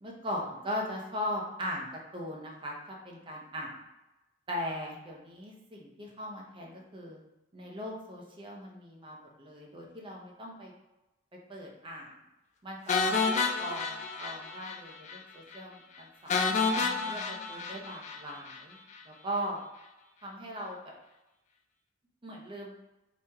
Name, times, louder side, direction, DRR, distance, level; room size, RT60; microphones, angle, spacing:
voice 1, 0.0-3.8 4.5-7.2 7.5-10.7 11.5-12.1 12.6-16.6 17.0-18.8 19.0-19.6 20.2-20.9 22.2-22.8, equal, 25° right, -1 dB, 0.7 m, -39 dB
sound 1, 12.9-14.8 15.1-15.2 15.5-15.6 16.3-18.6, left 4 dB, 40° left, 0.4 m, -30 dB
3.1 x 2.8 x 3.4 m, 1.0 s
head